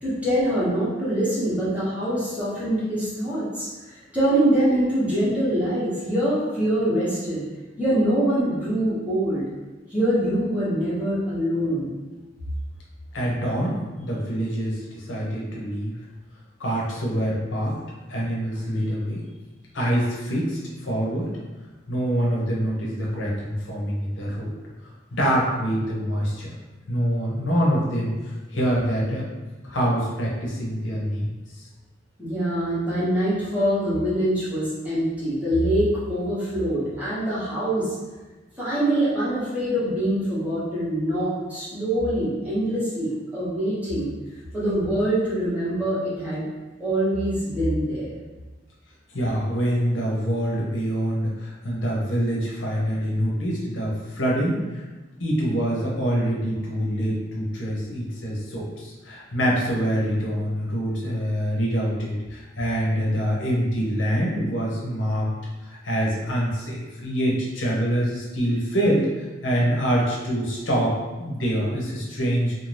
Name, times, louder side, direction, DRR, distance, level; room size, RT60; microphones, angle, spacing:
voice 1, 0.0-7.4 7.8-9.5 9.9-11.9 32.2-38.0 38.6-44.1 44.5-46.4 46.8-48.1, right 1 dB, 10° right, -10 dB, 1.0 m, -24 dB
voice 2, 13.1-16.0 16.6-17.8 18.1-19.2 19.7-21.3 21.9-24.5 25.1-26.5 26.9-29.3 29.6-31.3 31.6-31.7 49.1-54.8 55.2-65.3 65.6-72.5, equal, 85° left, -4 dB, 0.8 m, -25 dB
2.7 x 2.1 x 3.2 m, 1.2 s
head